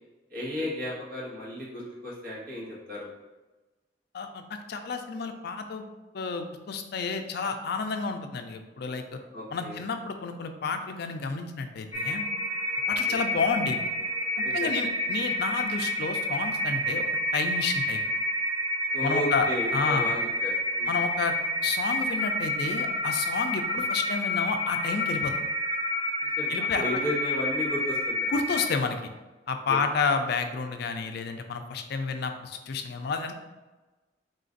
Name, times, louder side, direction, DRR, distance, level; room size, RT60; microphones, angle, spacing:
voice 1, 0.3-3.1 9.3-9.8 12.8-13.2 14.4-14.7 18.9-21.0 26.2-28.3 29.7-29.8, equal, 55° right, -6 dB, 1.2 m, -34 dB
voice 2, 4.1-5.9 6.1-9.2 9.5-12.2 12.9-13.8 14.5-17.1 17.3-18.0 19.0-19.5 19.7-20.1 20.9-21.3 21.6-25.3 26.5-26.8 28.3-29.1 29.5-33.3, left 4 dB, 60° left, 6 dB, 0.4 m, -30 dB
sound 1, 11.9-28.7, left 1 dB, 10° right, 0.8 m, -29 dB
3.8 x 2.5 x 3.8 m, 1.2 s
head